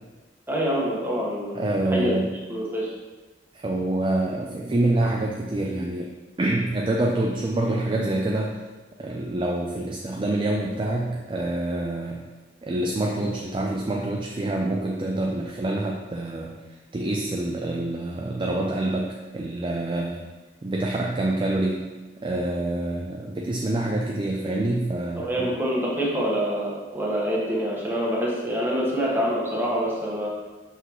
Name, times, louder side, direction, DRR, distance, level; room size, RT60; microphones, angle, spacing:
voice 1, 0.5-2.1 2.5-2.9 25.2-30.3, equal, 15° right, -5 dB, 1.3 m, -26 dB
voice 2, 1.6-2.3 3.5-6.1 6.4-8.6 9.0-12.2 12.6-16.5 16.9-20.2 20.6-21.9 22.2-25.5, right 2 dB, 30° right, -1 dB, 0.4 m, -26 dB
5.8 x 5.6 x 3.0 m, 1.2 s
head